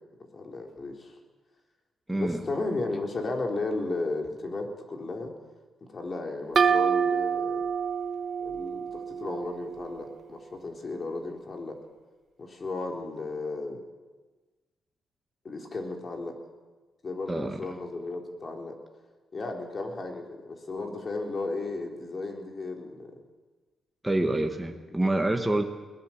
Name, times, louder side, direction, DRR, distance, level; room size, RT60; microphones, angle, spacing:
voice 1, 0.3-1.2 2.1-5.3 5.8-7.7 8.4-11.8 12.4-13.8 15.4-16.3 17.0-18.8 19.3-23.1 25.0-25.1, left 3 dB, 35° left, 2 dB, 3.7 m, -34 dB
voice 2, 2.1-2.4 17.3-17.6 24.0-25.6, right 1 dB, 10° right, 3 dB, 1.6 m, -27 dB
sound 1, 6.6-10.1, right 7 dB, 45° right, 1.3 m, -27 dB
21.5 x 18.5 x 7.3 m, 1.3 s
cardioid pair, 115°, 0 cm